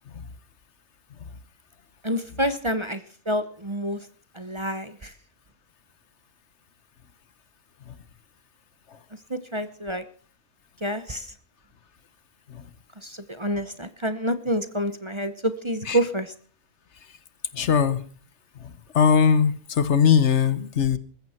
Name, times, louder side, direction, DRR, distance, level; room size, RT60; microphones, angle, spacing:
voice 1, 2.0-3.0 3.3-4.0 4.4-5.1 9.3-10.0 10.8-11.3 13.0-16.3, equal, 25° right, 0.9 m, -28 dB
voice 2, 17.5-18.0 18.9-21.0, left 7 dB, 65° left, 1.3 m, -20 dB
20.5 x 15.0 x 4.4 m
omnidirectional pair, 1.3 m